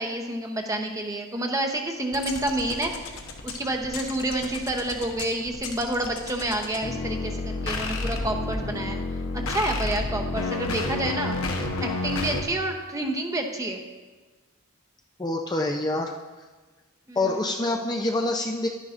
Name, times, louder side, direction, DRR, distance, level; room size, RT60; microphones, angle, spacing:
voice 1, 0.0-3.1 3.4-9.0 9.3-13.8 17.1-17.2, right 1 dB, 15° right, 3 dB, 0.8 m, -29 dB
sound 1, 2.1-12.4, left 3 dB, 80° left, 1.0 m, -31 dB
voice 2, 15.2-16.1 17.2-18.7, left 2 dB, 20° left, 2 dB, 0.5 m, -26 dB
12.0 x 10.0 x 2.5 m, 1.3 s
head